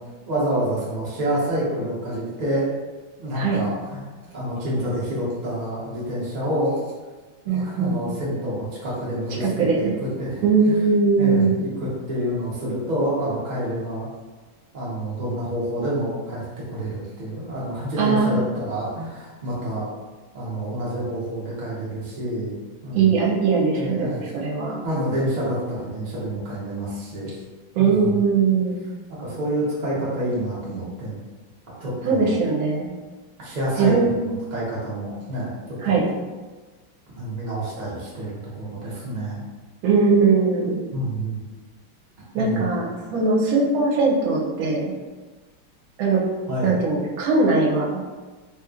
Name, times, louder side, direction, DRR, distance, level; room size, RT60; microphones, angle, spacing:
voice 1, 0.3-2.7 3.2-4.0 4.3-6.8 7.4-10.8 11.2-14.1 14.7-19.9 20.3-22.6 22.8-23.1 23.7-24.2 24.8-27.3 27.8-28.2 29.2-31.2 31.8-32.3 33.4-36.0 37.1-39.4 40.9-41.4 42.3-42.7 46.5-46.7, right 1 dB, 60° right, -7 dB, 0.4 m, -28 dB
voice 2, 3.3-3.6 7.5-8.0 9.4-9.9 10.4-11.6 18.0-18.4 22.9-24.8 27.7-28.8 32.0-32.9 33.8-34.3 35.8-36.1 39.8-40.8 42.3-42.8 43.1-44.9 46.0-46.3 46.6-48.0, right 4 dB, 80° right, -3 dB, 1.3 m, -20 dB
3.4 x 2.8 x 2.4 m, 1.3 s
omnidirectional pair, 2.3 m